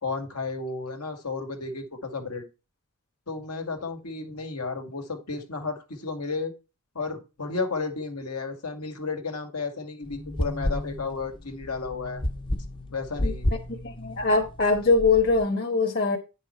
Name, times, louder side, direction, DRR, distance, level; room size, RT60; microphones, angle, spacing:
voice 1, 0.0-2.4 3.3-6.5 7.0-12.2 12.9-13.5, left 4 dB, 90° left, 1.9 m, -33 dB
sound 1, 10.0-15.4, left 1 dB, 20° left, 0.6 m, -32 dB
voice 2, 13.8-16.2, left 3 dB, 50° left, 1.2 m, -22 dB
9.5 x 5.5 x 4.3 m
head